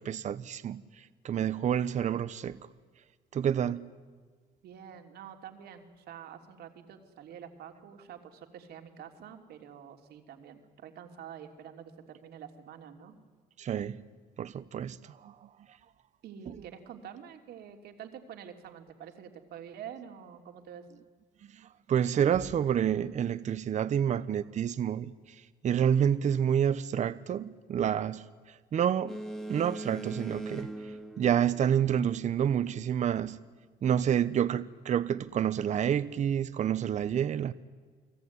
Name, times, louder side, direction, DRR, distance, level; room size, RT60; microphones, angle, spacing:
voice 1, 0.0-2.6 3.3-3.9 13.6-14.1 14.4-15.5 16.5-16.6 21.5-25.1 25.6-29.2 29.5-30.7 31.2-33.4 33.8-37.5, right 9 dB, 45° right, 0.9 m, -29 dB
voice 2, 4.6-13.2 16.2-20.8, right 8 dB, 70° right, 3.2 m, -47 dB
Boat Water vehicle, 29.1-32.2, right 1 dB, ahead, 1.9 m, -41 dB
30.0 x 20.5 x 9.5 m
cardioid pair, 110°, 17 cm